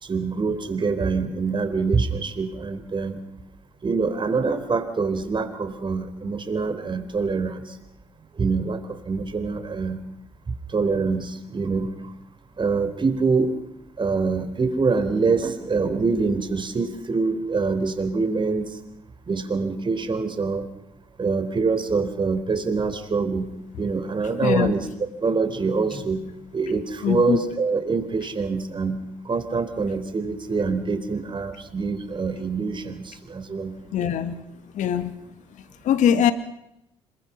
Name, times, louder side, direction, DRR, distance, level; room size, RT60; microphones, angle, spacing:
voice 1, 0.0-3.2 3.8-7.8 8.4-10.0 10.7-11.9 12.6-13.6 14.0-18.8 19.3-20.7 21.2-23.5 23.8-24.9 25.2-26.2 26.5-29.0 29.2-33.7, right 4 dB, 35° right, 8 dB, 4.0 m, -25 dB
voice 2, 27.0-27.4 33.9-34.3 34.7-35.1 35.5-36.3, left 9 dB, 60° left, 10 dB, 2.3 m, -22 dB
27.0 x 23.0 x 5.8 m, 0.84 s
hypercardioid pair, 50°, 14 cm